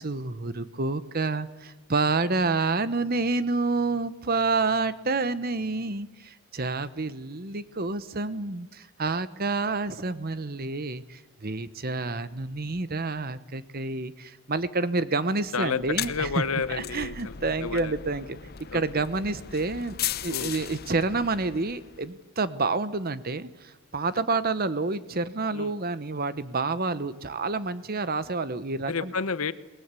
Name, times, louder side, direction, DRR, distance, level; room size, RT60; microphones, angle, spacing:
voice 1, 0.0-16.3 16.7-18.4 18.7-29.1, right 3 dB, 40° right, 14 dB, 1.0 m, -29 dB
sound 1, 15.7-22.1, left 10 dB, 45° left, 0.8 m, -37 dB
voice 2, 16.1-17.3 17.6-17.9 18.7-19.0 20.3-20.5 25.5-25.7 28.9-29.5, left 5 dB, 75° left, 14 dB, 1.0 m, -30 dB
29.0 x 20.5 x 8.3 m, 1.2 s
head